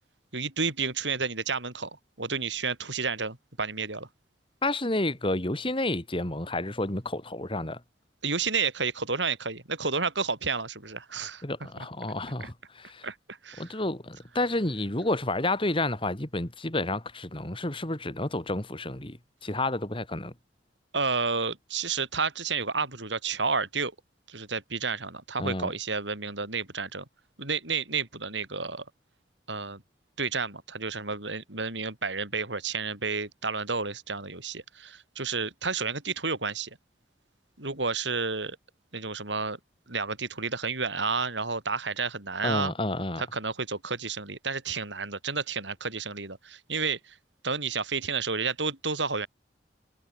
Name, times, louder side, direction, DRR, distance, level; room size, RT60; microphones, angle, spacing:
voice 1, 0.3-1.9 2.2-4.1 8.2-11.4 11.8-11.9 12.4-12.5 13.0-13.8 20.9-23.9 24.3-27.1 27.4-28.8 29.5-29.8 30.2-36.7 37.6-38.6 38.9-39.6 39.9-42.7 43.2-47.1 47.4-49.3, right 4 dB, 90° right, 5.6 m, -31 dB
voice 2, 4.6-7.8 11.4-13.1 13.6-19.2 19.4-20.3 25.4-25.7 42.4-43.2, left 2 dB, 30° left, 2.9 m, -30 dB
head